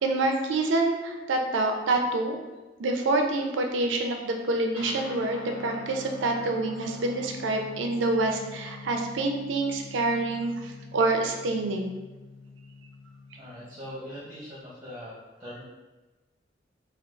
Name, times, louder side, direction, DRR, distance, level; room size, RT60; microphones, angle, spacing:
voice 1, 0.0-2.4 2.8-12.0, right 2 dB, 70° right, 3 dB, 0.4 m, -27 dB
Guitar, 4.7-14.6, left 4 dB, 80° left, 0.4 m, -44 dB
voice 2, 13.4-15.1 15.4-15.6, equal, 20° right, -9 dB, 0.8 m, -41 dB
3.7 x 2.3 x 2.3 m, 1.2 s
head